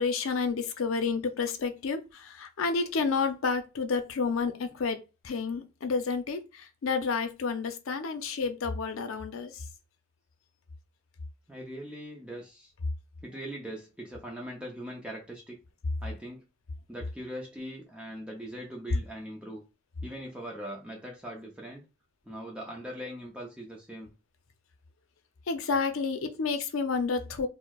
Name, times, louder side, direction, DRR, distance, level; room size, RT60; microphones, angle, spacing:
voice 1, 0.0-9.6 25.5-27.5, left 4 dB, 90° left, 0.5 m, -30 dB
voice 2, 11.5-12.7 13.2-15.6 16.0-16.4 16.9-19.6 20.0-21.9 22.3-24.1, equal, 5° right, 0.5 m, -41 dB
4.3 x 2.0 x 2.3 m
head